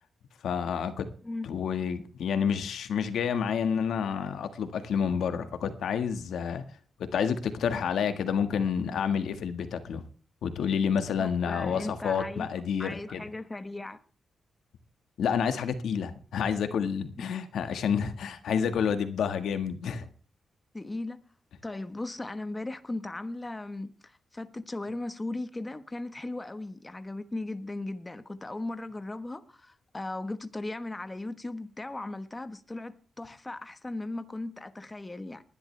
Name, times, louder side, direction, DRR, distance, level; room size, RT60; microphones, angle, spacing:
voice 1, 0.4-1.1 1.4-6.6 7.0-10.0 10.4-13.2 15.2-20.1, left 7 dB, 85° left, 1.6 m, -29 dB
voice 2, 11.2-12.5 12.8-14.0 17.2-17.3 20.7-21.2 21.6-35.4, left 2 dB, 20° left, 1.3 m, -37 dB
19.5 x 12.0 x 3.4 m
cardioid pair, 90°, 0 cm